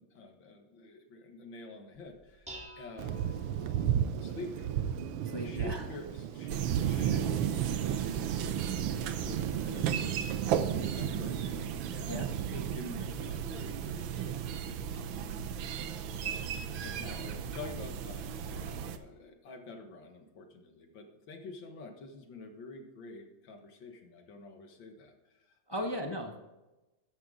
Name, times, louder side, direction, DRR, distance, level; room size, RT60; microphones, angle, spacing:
voice 1, 0.0-3.2 3.6-4.7 5.4-8.8 9.2-10.3 10.7-14.4 14.6-15.5 16.1-26.0, left 3 dB, 65° left, 5 dB, 2.1 m, -48 dB
Dishes pots and pans, 1.9-9.0, right 1 dB, 5° right, 2.0 m, -55 dB
Thunder, 3.0-14.6, right 10 dB, 90° right, 1.6 m, -34 dB
voice 2, 5.2-5.9 12.1-12.3 16.8-17.4 25.7-26.4, equal, 25° left, 2 dB, 0.6 m, -38 dB
sound 1, 6.5-19.0, right 8 dB, 70° right, 1.5 m, -36 dB
13.5 x 10.0 x 3.8 m, 1.0 s
omnidirectional pair, 2.3 m